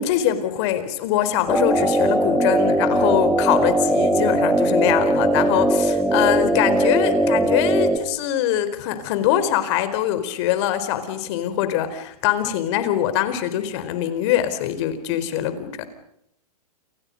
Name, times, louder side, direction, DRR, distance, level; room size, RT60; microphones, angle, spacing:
voice 1, 0.0-15.9, left 11 dB, 45° left, 11 dB, 4.3 m, -23 dB
sound 1, 1.5-8.0, right 1 dB, 5° right, 2.7 m, -20 dB
29.5 x 29.5 x 5.3 m, 0.74 s
hypercardioid pair, 135°, 20 cm